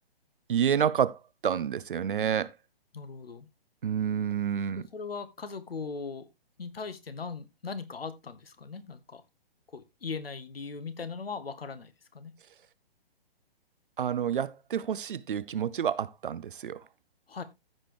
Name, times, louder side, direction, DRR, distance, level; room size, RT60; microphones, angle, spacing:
voice 1, 0.5-2.5 3.8-4.9 14.0-16.8, right 8 dB, 55° right, 0.7 m, -29 dB
voice 2, 2.9-3.5 4.8-6.3 6.6-9.2 9.7-12.3 17.3-17.4, left 5 dB, 70° left, 1.4 m, -39 dB
14.5 x 5.1 x 3.0 m
figure-of-eight pair, 130°, 30 cm